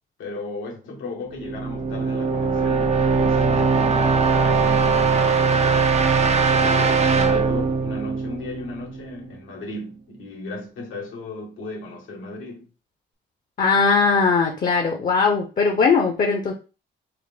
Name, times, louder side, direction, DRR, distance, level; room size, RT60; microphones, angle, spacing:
voice 1, 0.2-5.4 6.5-12.7, left 2 dB, 85° left, 1.5 m, -35 dB
sound 1, 1.4-9.2, right 4 dB, 35° right, 0.5 m, -20 dB
voice 2, 13.6-16.5, left 4 dB, 40° left, 0.7 m, -19 dB
3.8 x 2.1 x 3.4 m
cardioid pair, 90°, 20 cm